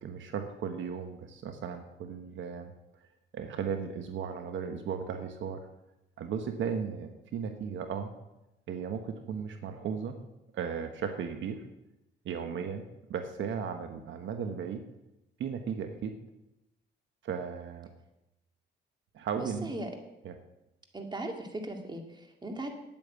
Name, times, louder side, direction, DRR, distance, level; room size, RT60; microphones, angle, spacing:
voice 1, 0.0-2.7 3.3-5.6 6.2-8.1 8.7-10.1 10.5-11.7 12.2-12.8 13.1-14.8 15.4-16.2 17.2-17.9 19.1-19.7 20.2-20.4, right 7 dB, 70° right, 6 dB, 1.2 m, -36 dB
voice 2, 19.4-19.9 20.9-22.7, right 1 dB, 20° right, 3 dB, 2.3 m, -38 dB
9.2 x 8.9 x 8.2 m, 0.93 s
cardioid pair, 90°, 20 cm